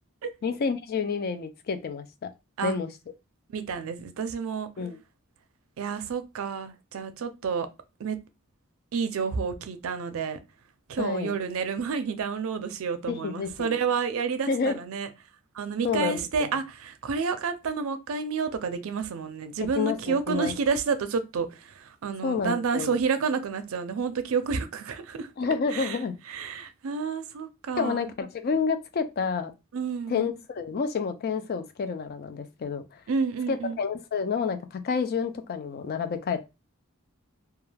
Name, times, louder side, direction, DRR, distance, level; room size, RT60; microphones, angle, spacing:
voice 1, 0.4-2.3 2.6-2.9 4.8-5.0 11.0-11.3 13.1-13.8 14.5-14.8 15.8-16.2 19.8-20.5 22.2-22.9 25.4-26.1 27.8-29.5 30.1-33.0 33.5-36.4, left 5 dB, 45° left, 0.4 m, -29 dB
voice 2, 3.5-4.7 5.8-7.7 8.0-8.2 8.9-10.4 10.9-15.1 15.5-25.3 25.7-26.0 26.3-28.1 29.7-30.3 33.1-33.8, right 5 dB, 70° right, 0.4 m, -30 dB
2.3 x 2.2 x 3.2 m
head